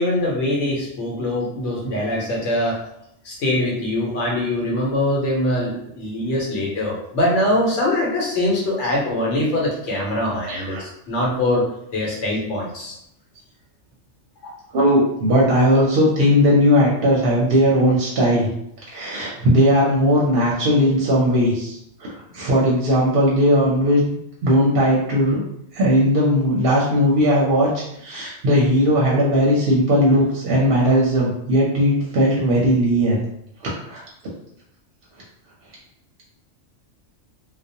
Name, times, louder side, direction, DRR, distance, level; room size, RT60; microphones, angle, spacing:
voice 1, 0.0-2.8 3.2-11.6 11.9-12.9 14.4-14.5, left 1 dB, 75° left, -3 dB, 1.1 m, -23 dB
voice 2, 10.5-10.8 14.7-18.5 18.9-24.0 24.4-25.4 25.7-33.2 33.6-34.0, equal, 60° right, -4 dB, 0.7 m, -18 dB
2.4 x 2.1 x 2.7 m, 0.78 s
omnidirectional pair, 1.2 m